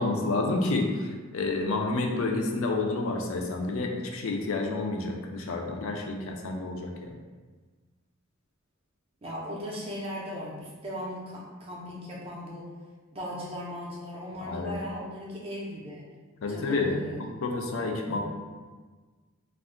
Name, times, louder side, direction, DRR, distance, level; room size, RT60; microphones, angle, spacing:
voice 1, 0.0-7.1 14.4-14.7 16.4-16.9 17.2-18.2, left 3 dB, 75° left, 2 dB, 0.4 m, -29 dB
voice 2, 9.2-12.7 13.1-16.1 16.5-17.2 18.1-18.2, equal, 30° right, -5 dB, 0.4 m, -38 dB
2.3 x 2.1 x 3.6 m, 1.4 s
head